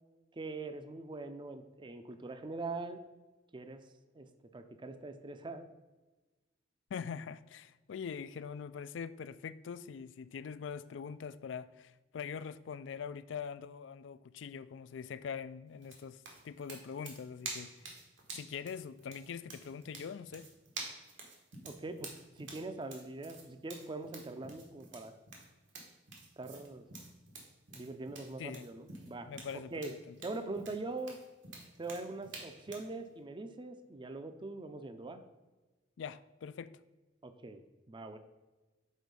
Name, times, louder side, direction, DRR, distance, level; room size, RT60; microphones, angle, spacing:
voice 1, 0.3-3.0 3.5-3.8 4.1-4.3 4.5-5.7 21.6-22.1 22.4-25.1 26.4-26.8 27.7-29.3 29.7-29.9 30.2-31.2 31.8-35.2 37.2-37.6 37.9-38.2, right 3 dB, 25° right, 9 dB, 0.5 m, -42 dB
voice 2, 6.9-17.7 18.3-20.5 28.4-28.6 29.3-29.7 30.1-30.2 36.0-36.8, left 6 dB, 70° left, 15 dB, 0.4 m, -43 dB
sound 1, 15.8-32.9, right 3 dB, 85° right, 1.5 m, -49 dB
6.3 x 4.2 x 5.2 m, 1.2 s
head